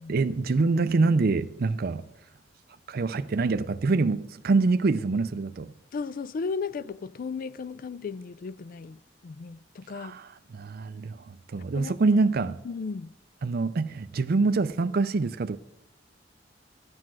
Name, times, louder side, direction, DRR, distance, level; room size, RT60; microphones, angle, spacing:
voice 1, 0.1-2.0 2.9-5.7 9.9-10.3 10.5-12.6 13.4-15.6, right 3 dB, 55° right, 0.5 m, -25 dB
voice 2, 5.9-10.2 11.7-11.9 12.6-13.1, left 5 dB, 50° left, 0.4 m, -35 dB
14.0 x 9.6 x 6.1 m
head